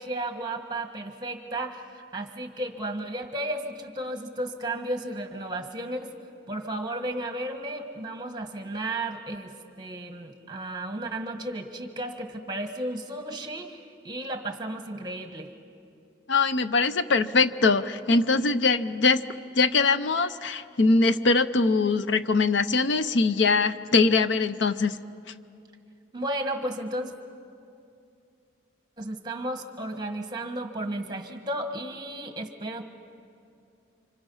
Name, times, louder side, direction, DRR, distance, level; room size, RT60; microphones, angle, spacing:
voice 1, 0.0-6.1 6.5-9.5 9.8-15.5 26.1-27.2 29.0-32.8, right 1 dB, 20° right, 5 dB, 1.5 m, -33 dB
voice 2, 16.3-19.2 19.6-25.0, left 3 dB, 70° left, 12 dB, 0.6 m, -22 dB
29.5 x 26.0 x 5.6 m, 2.5 s
head